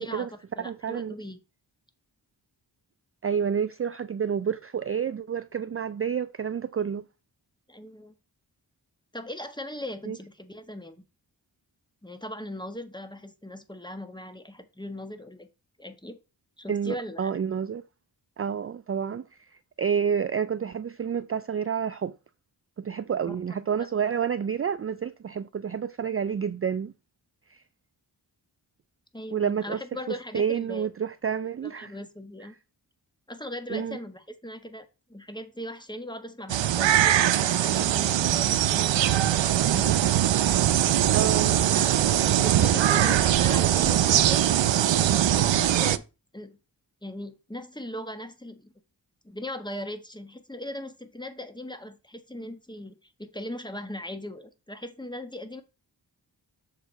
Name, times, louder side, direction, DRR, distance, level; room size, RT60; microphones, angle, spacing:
voice 1, 0.0-1.4 7.7-8.1 9.1-11.0 12.0-15.5 15.8-16.2 16.6-17.3 23.3-23.4 29.1-30.9 31.6-32.6 33.3-39.9 41.0-44.5 45.3-46.0 46.3-46.6 47.0-48.7 49.2-55.6, left 1 dB, 10° left, 1.4 m, -39 dB
voice 2, 0.6-1.2 3.2-7.0 10.1-10.2 16.7-17.8 18.4-19.2 19.8-22.1 22.8-26.9 27.5-27.6 29.3-29.8 30.3-31.9 33.7-34.0 41.1-41.6, right 7 dB, 35° right, 0.4 m, -29 dB
sound 1, 36.5-46.0, right 11 dB, 85° right, 0.6 m, -22 dB
6.7 x 4.9 x 4.5 m
cardioid pair, 50°, 44 cm